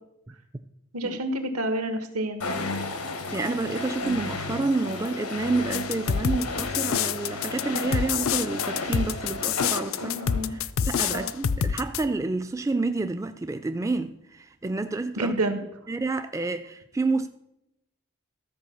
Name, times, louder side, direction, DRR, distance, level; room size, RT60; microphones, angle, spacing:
voice 1, 0.9-2.4 10.0-10.5 11.1-11.3 15.2-15.6, right 1 dB, 90° right, 1.4 m, -28 dB
sound 1, 2.4-10.6, left 3 dB, 90° left, 1.3 m, -33 dB
voice 2, 3.3-10.1 10.5-15.3 15.9-17.3, right 3 dB, 15° right, 0.3 m, -29 dB
sound 2, 5.7-12.0, left 7 dB, 65° left, 0.4 m, -26 dB
13.0 x 4.6 x 7.1 m
head